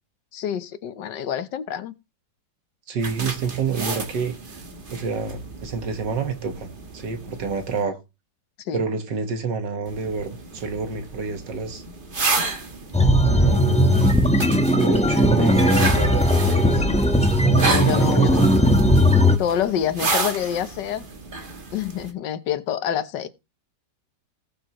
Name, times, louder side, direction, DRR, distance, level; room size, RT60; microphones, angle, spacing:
voice 1, 0.3-1.9 8.6-8.8 16.6-17.0 17.5-18.4 19.4-21.1 21.7-23.3, left 9 dB, 80° left, 1.6 m, -27 dB
voice 2, 2.9-4.4 4.9-8.0 8.7-11.8 13.2-14.1 14.6-16.8 17.6-18.4, right 5 dB, 80° right, 2.1 m, -28 dB
sound 1, 3.0-7.8 9.9-22.1, right 3 dB, 30° right, 1.4 m, -32 dB
sound 2, 12.9-19.4, equal, 5° left, 0.8 m, -18 dB
19.0 x 7.0 x 3.0 m
omnidirectional pair, 1.9 m